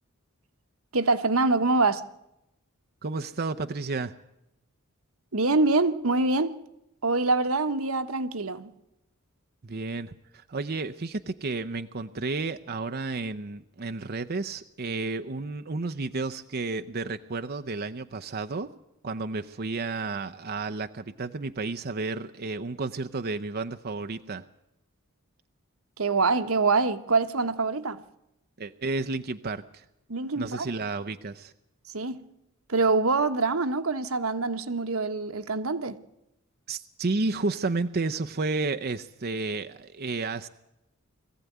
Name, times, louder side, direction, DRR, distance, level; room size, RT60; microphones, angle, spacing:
voice 1, 0.9-2.0 5.3-6.5 7.0-8.7 26.0-28.0 30.1-30.7 31.9-32.3 32.7-36.0, right 3 dB, 85° right, 1.2 m, -25 dB
voice 2, 3.0-4.1 9.6-18.7 19.0-24.4 28.6-29.8 30.4-31.5 36.7-40.5, right 3 dB, 45° right, 0.7 m, -32 dB
22.0 x 15.0 x 9.3 m
head